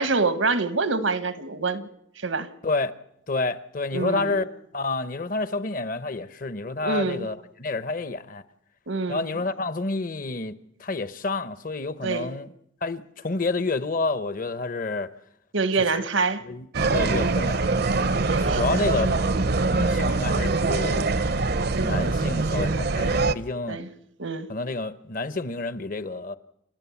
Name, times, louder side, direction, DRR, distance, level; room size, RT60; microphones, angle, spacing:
voice 1, 0.0-1.9 2.2-2.5 3.9-4.3 6.8-7.3 8.9-9.3 12.0-12.3 15.5-16.4 18.3-18.9 23.7-23.9 24.2-24.5, right 3 dB, 85° right, 1.3 m, -26 dB
voice 2, 3.3-4.5 4.7-8.4 9.1-10.5 10.8-12.5 12.8-15.1 16.4-17.7 18.4-19.1 19.7-21.2 21.8-23.8 24.5-26.4, left 3 dB, 45° left, 0.8 m, -29 dB
sound 1, 16.7-23.3, right 3 dB, 55° right, 0.7 m, -23 dB
30.0 x 13.5 x 7.1 m
head